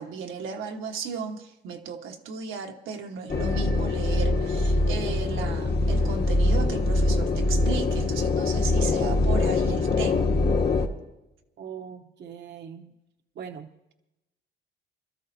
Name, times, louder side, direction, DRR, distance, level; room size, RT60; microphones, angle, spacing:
voice 1, 0.0-10.3, right 5 dB, 85° right, 1.4 m, -35 dB
sound 1, 3.3-10.9, left 2 dB, 55° left, 1.6 m, -23 dB
voice 2, 11.6-12.9 13.4-13.7, right 7 dB, 60° right, 0.9 m, -40 dB
25.5 x 13.0 x 2.7 m
cardioid pair, 90°, 20 cm